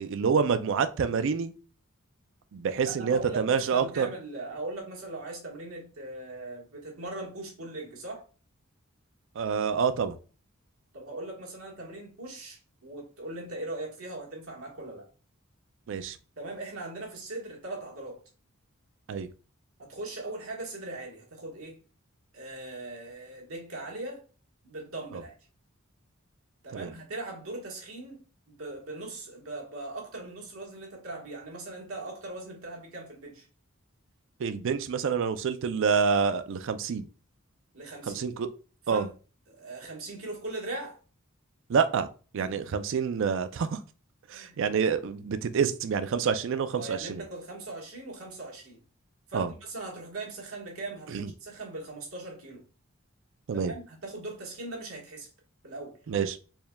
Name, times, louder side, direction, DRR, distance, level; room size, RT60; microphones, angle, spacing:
voice 1, 0.0-1.5 2.5-4.1 9.4-10.2 15.9-16.2 19.1-19.3 26.7-26.9 34.4-37.1 38.1-38.5 38.9-39.1 41.7-42.1 42.3-43.8 44.3-47.2 49.3-49.5 51.1-51.3 53.5-53.7 56.1-56.4, right 6 dB, 60° right, 0.4 m, -27 dB
voice 2, 2.8-8.3 10.9-15.1 16.4-18.2 19.8-21.8 22.3-24.2 24.6-25.3 26.6-33.5 37.7-38.2 38.9-39.1 39.5-41.0 42.4-42.6 44.3-44.6 46.7-48.8 49.3-52.6 53.5-55.3 55.6-56.0, right 2 dB, 80° right, 1.4 m, -40 dB
4.4 x 3.3 x 2.2 m
head